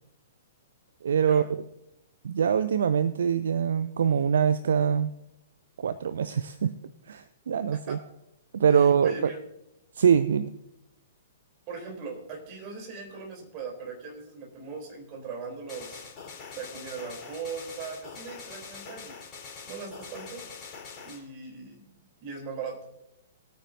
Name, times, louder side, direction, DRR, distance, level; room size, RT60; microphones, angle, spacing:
voice 1, 1.0-1.4 2.2-5.1 5.8-6.7 7.1-8.0 8.5-9.3 10.0-10.5, right 7 dB, 60° right, 14 dB, 0.5 m, -24 dB
voice 2, 8.7-9.4 11.7-16.0 16.5-19.2 19.6-20.4 21.0-21.9 22.2-22.8, right 5 dB, 35° right, 1 dB, 3.5 m, -39 dB
sound 1, 15.7-21.2, left 5 dB, 25° left, 3.9 m, -44 dB
20.5 x 9.2 x 2.7 m, 0.86 s
figure-of-eight pair, 110°, 0 cm